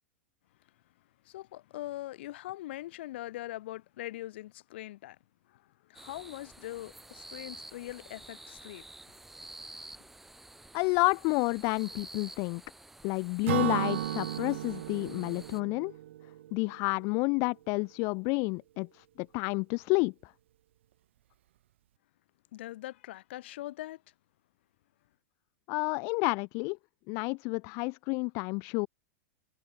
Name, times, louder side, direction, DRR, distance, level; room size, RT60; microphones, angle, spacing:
voice 1, 1.2-5.2 5.5-8.9 22.5-24.0, left 15 dB, 65° left, 7.9 m, -42 dB
sound 1, 5.9-15.6, right 2 dB, 5° right, 6.3 m, -49 dB
voice 2, 10.7-12.6 13.0-15.9 16.5-20.3 25.7-26.8 27.1-28.9, left 31 dB, 45° left, 1.0 m, -30 dB
Acoustic guitar / Strum, 13.5-17.1, right 13 dB, 75° right, 5.6 m, -34 dB
supercardioid pair, 145°, 6 cm